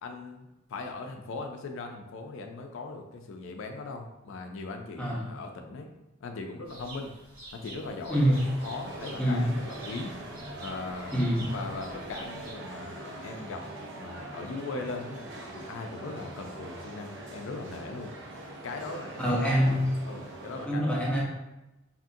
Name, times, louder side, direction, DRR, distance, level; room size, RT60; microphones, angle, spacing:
voice 1, 0.0-5.9 6.2-7.1 7.5-8.4 8.6-10.1 10.6-11.2 11.5-13.6 14.0-18.1 18.6-19.4 20.1-21.0, left 3 dB, 65° left, 4 dB, 0.4 m, -39 dB
sound 1, 6.6-12.5, right 2 dB, 85° right, 0.9 m, -48 dB
sound 2, 8.1-20.7, right 2 dB, 60° right, 0.5 m, -42 dB
voice 2, 9.2-9.5 11.1-11.5 19.2-19.9 20.6-21.2, equal, 5° left, -5 dB, 0.6 m, -25 dB
2.8 x 2.4 x 2.6 m, 0.98 s
head